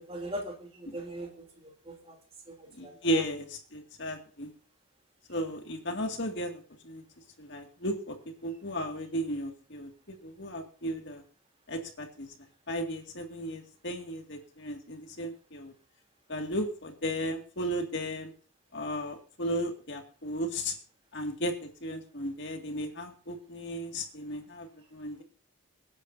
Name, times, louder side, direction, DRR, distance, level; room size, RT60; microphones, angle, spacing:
voice 1, 0.0-2.2 2.5-3.2, right 1 dB, 25° right, 3.1 m, -41 dB
voice 2, 2.8-4.5 5.3-7.0 7.4-8.2 8.4-11.2 11.7-12.3 12.7-15.7 16.3-18.3 18.7-20.7 21.1-25.2, equal, 55° left, 2.2 m, -35 dB
24.5 x 10.0 x 2.7 m
head